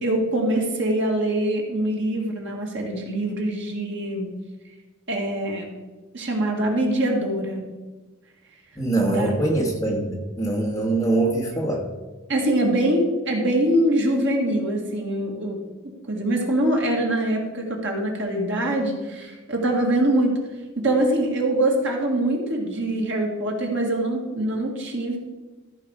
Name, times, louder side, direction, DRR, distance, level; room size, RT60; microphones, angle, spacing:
voice 1, 0.0-4.3 5.1-5.7 6.1-7.7 9.1-9.3 12.3-15.6 16.1-20.3 20.8-25.2, right 1 dB, 55° right, 0 dB, 1.8 m, -23 dB
voice 2, 8.8-11.8, right 2 dB, 15° left, -1 dB, 1.4 m, -23 dB
14.0 x 5.2 x 4.8 m, 1.2 s
head